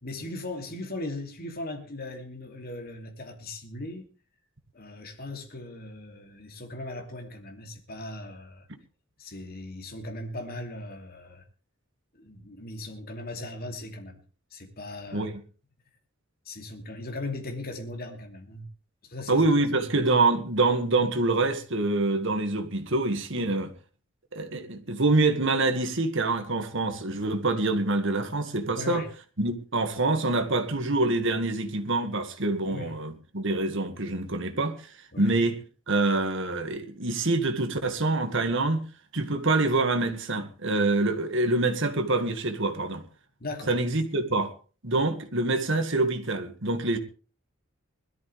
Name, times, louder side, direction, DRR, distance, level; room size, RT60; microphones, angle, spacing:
voice 1, 0.0-4.1 4.7-8.7 9.2-11.4 12.1-14.2 14.5-15.3 16.4-18.7 19.0-19.4 19.7-19.9 28.7-29.1 32.6-32.9 35.1-35.3 43.4-43.8, left 2 dB, 45° left, 2.9 m, -38 dB
voice 2, 19.3-23.7 24.3-29.0 29.4-34.8 35.2-35.6 35.9-38.8 39.1-43.0 43.7-44.5 44.8-47.0, right 2 dB, 60° right, 2.1 m, -26 dB
21.0 x 13.5 x 3.5 m
head